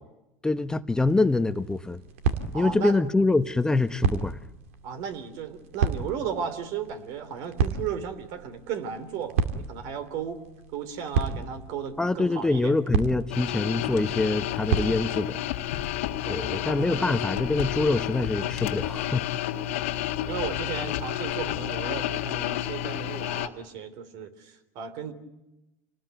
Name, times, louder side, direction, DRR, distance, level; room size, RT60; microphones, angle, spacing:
voice 1, 0.4-2.0 2.5-4.4 12.0-15.4 16.3-19.3, left 3 dB, 10° left, 11 dB, 0.9 m, -25 dB
sound 1, 1.0-15.5, right 5 dB, 90° right, 2.2 m, -33 dB
voice 2, 2.5-3.0 4.8-10.4 10.7-12.7 16.2-16.6 16.9-17.1 20.3-25.1, right 7 dB, 65° right, 11 dB, 3.4 m, -35 dB
sound 2, 13.3-23.5, left 13 dB, 90° left, 1.6 m, -30 dB
27.0 x 19.5 x 9.2 m, 0.97 s
supercardioid pair, 105°, 7 cm